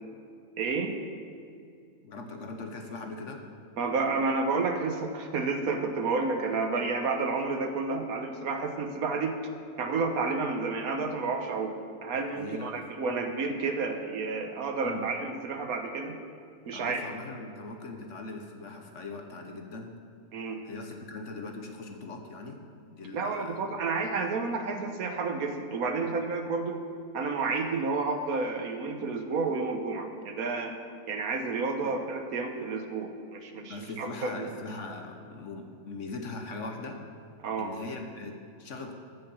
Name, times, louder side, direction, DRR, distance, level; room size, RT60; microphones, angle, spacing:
voice 1, 0.6-0.9 3.8-9.3 9.8-11.7 12.0-16.2 16.7-17.0 20.3-20.6 23.1-26.8 27.1-30.7 31.1-34.5 37.4-37.7, right 4 dB, 65° right, 6 dB, 1.3 m, -30 dB
voice 2, 2.0-3.4 12.3-12.8 14.8-15.0 16.7-19.9 20.6-22.6 22.9-23.7 26.0-26.1 31.8-31.9 33.5-37.0 37.5-38.9, left 3 dB, 55° left, 4 dB, 1.2 m, -40 dB
13.5 x 5.8 x 7.0 m, 2.3 s
omnidirectional pair, 1.7 m